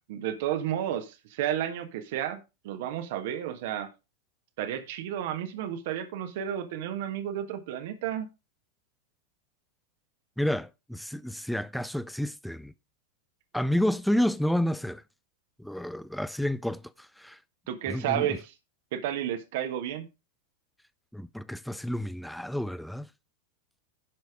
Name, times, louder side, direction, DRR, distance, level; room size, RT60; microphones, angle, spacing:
voice 1, 0.1-3.9 4.6-8.3 17.7-18.5 18.9-20.1, right 10 dB, 50° right, 1.5 m, -32 dB
voice 2, 10.4-12.7 13.5-15.0 15.6-17.4 17.9-18.3 21.1-23.1, left 1 dB, ahead, 0.5 m, -30 dB
10.5 x 6.2 x 4.9 m
figure-of-eight pair, 90°, 0 cm